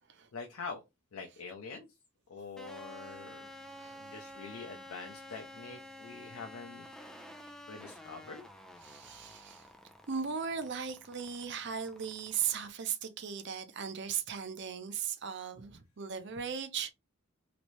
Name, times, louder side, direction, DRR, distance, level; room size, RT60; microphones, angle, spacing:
voice 1, 0.3-0.8 1.1-1.9 2.3-3.5 4.0-6.9 7.7-8.4, left 4 dB, 85° left, 0.6 m, -45 dB
sound 1, 2.6-12.7, equal, 5° left, 0.4 m, -51 dB
voice 2, 3.7-4.0 8.8-9.7 10.1-16.9, right 7 dB, 55° right, 0.5 m, -37 dB
3.1 x 3.0 x 2.6 m
head